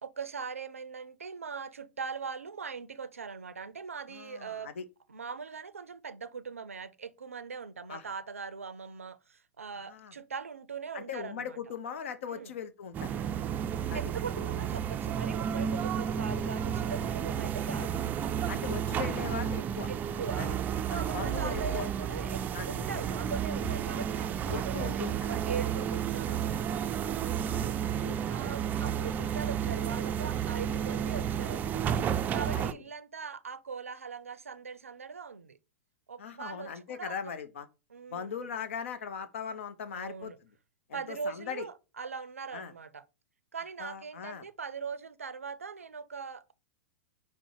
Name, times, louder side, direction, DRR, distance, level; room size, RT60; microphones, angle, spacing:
voice 1, 0.0-4.7 5.1-11.6 12.3-12.5 13.7-18.0 19.9-20.6 20.9-26.8 28.3-32.0 32.3-35.6 36.1-37.1 37.9-38.4 39.9-40.4 40.9-43.0 43.5-46.5, right 5 dB, 85° right, 0.4 m, -41 dB
voice 2, 4.1-4.9 7.9-8.0 9.9-10.1 10.9-13.1 13.9-14.1 18.5-19.9 20.4-20.5 20.9-21.8 22.5-22.7 24.5-25.2 27.3-28.2 32.6-32.8 36.2-37.7 38.1-40.5 40.9-41.7 42.5-42.7 43.8-44.5, left 7 dB, 65° left, 0.5 m, -39 dB
sound 1, 12.9-32.7, right 8 dB, 25° right, 0.3 m, -32 dB
sound 2, 15.7-19.4 20.3-23.8, left 2 dB, 10° left, 0.7 m, -48 dB
5.2 x 2.1 x 4.5 m
hypercardioid pair, 105°, 7 cm